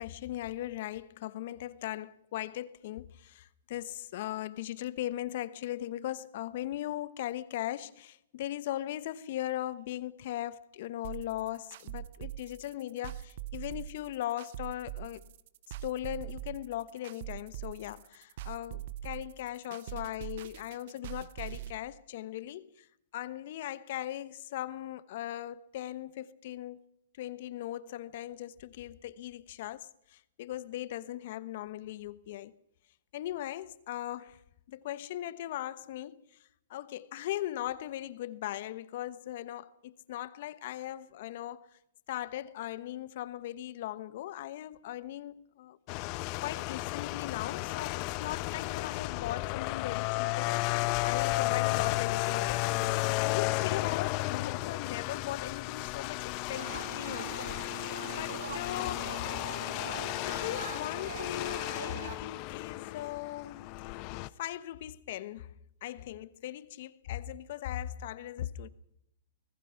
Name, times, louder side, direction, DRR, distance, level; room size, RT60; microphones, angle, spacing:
voice 1, 0.0-15.3 15.8-22.9 23.1-26.8 27.2-32.5 33.1-34.4 34.7-36.2 36.7-41.7 42.1-45.8 46.4-57.5 57.8-59.3 60.2-63.8 64.4-65.5 65.8-68.7, left 13 dB, 55° left, 1.1 m, -39 dB
sound 1, 11.0-21.7, right 13 dB, 55° right, 0.9 m, -42 dB
sound 2, 45.9-64.3, left 20 dB, 40° left, 0.7 m, -33 dB
sound 3, 56.5-62.2, right 6 dB, 85° right, 2.3 m, -43 dB
25.0 x 19.0 x 5.9 m
hypercardioid pair, 130°, 0 cm